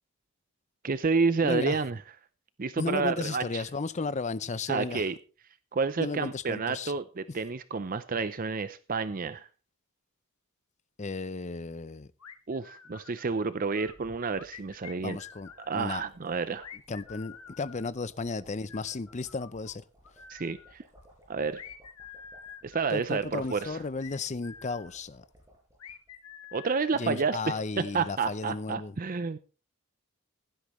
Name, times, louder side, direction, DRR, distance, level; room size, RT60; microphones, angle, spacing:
voice 1, 0.8-2.0 2.6-3.6 4.7-5.2 5.7-9.5 12.5-15.2 15.6-16.7 20.3-20.8 21.3-21.6 22.6-23.8 26.5-29.4, right 4 dB, 40° right, 0.5 m, -30 dB
voice 2, 1.4-1.8 2.8-5.1 6.0-6.9 11.0-12.1 15.0-16.0 16.9-19.8 22.9-25.2 27.0-29.0, left 3 dB, 30° left, 0.5 m, -34 dB
sound 1, 12.2-13.4 13.7-15.8 16.6-19.7 20.0-20.8 21.5-25.0 25.8-27.6, left 8 dB, 85° left, 1.5 m, -49 dB
sound 2, 13.8-26.5 26.8-26.9 27.1-27.4, equal, 15° right, 5.8 m, -60 dB
16.0 x 12.0 x 3.1 m
head